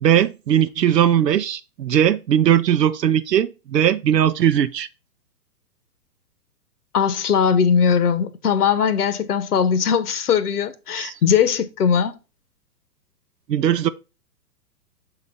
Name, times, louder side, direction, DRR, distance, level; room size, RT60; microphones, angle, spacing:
voice 1, 0.0-4.9 10.9-11.1 13.5-13.9, right 10 dB, 85° right, 0.6 m, -19 dB
voice 2, 6.9-12.2, left 7 dB, 70° left, 1.0 m, -20 dB
7.3 x 4.0 x 4.0 m
figure-of-eight pair, 115°, 48 cm